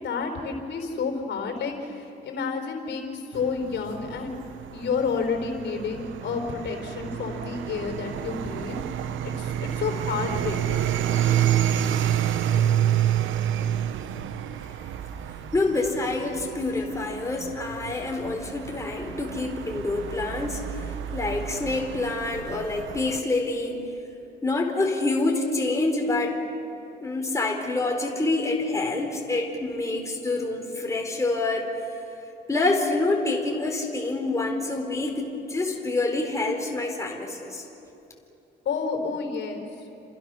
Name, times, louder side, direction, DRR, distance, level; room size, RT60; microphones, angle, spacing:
voice 1, 0.0-4.4 4.7-8.8 9.2-10.9 38.6-39.6, left 5 dB, 65° left, 4 dB, 4.1 m, -30 dB
sound 1, 3.3-23.2, right 10 dB, 80° right, 1.1 m, -29 dB
voice 2, 15.5-23.9 24.4-26.4 27.0-31.7 32.5-37.7, left 2 dB, 15° left, 1 dB, 4.1 m, -27 dB
29.5 x 26.5 x 6.3 m, 2.9 s
cardioid pair, 90°, 20 cm